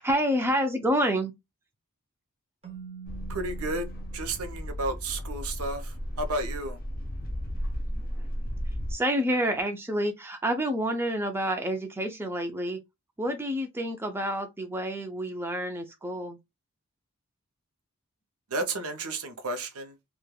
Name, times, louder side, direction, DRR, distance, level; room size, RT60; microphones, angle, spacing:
voice 1, 0.0-1.3 7.9-8.0 8.9-12.8 13.2-16.4, equal, 10° right, 0.4 m, -28 dB
Keyboard (musical), 2.6-5.4, right 6 dB, 25° right, 0.8 m, -46 dB
sound 1, 3.1-8.9, equal, 45° left, 0.6 m, -34 dB
voice 2, 3.3-6.8 18.5-19.9, right 2 dB, 75° right, 0.6 m, -32 dB
3.1 x 2.1 x 2.2 m
head